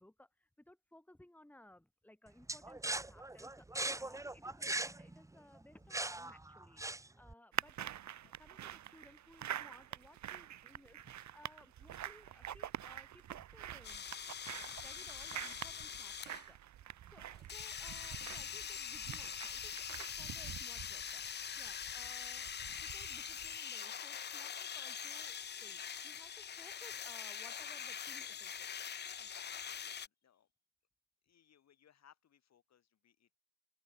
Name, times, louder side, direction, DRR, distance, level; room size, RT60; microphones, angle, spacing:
voice 1, 0.0-8.0 8.2-14.1 14.7-16.6 17.1-21.2 21.6-22.5 22.8-28.7 29.2-29.3, left 1 dB, 5° left, 3.5 m, -61 dB
sound 1, 2.5-7.3, right 2 dB, 10° right, 1.1 m, -40 dB
sound 2, 7.5-23.6, right 11 dB, 65° right, 2.1 m, -47 dB
sound 3, 13.8-16.5 17.5-30.1, left 8 dB, 35° left, 0.7 m, -44 dB
voice 2, 29.6-30.5 31.2-33.4, left 9 dB, 60° left, 6.9 m, -68 dB
open air
cardioid pair, 90°, 30 cm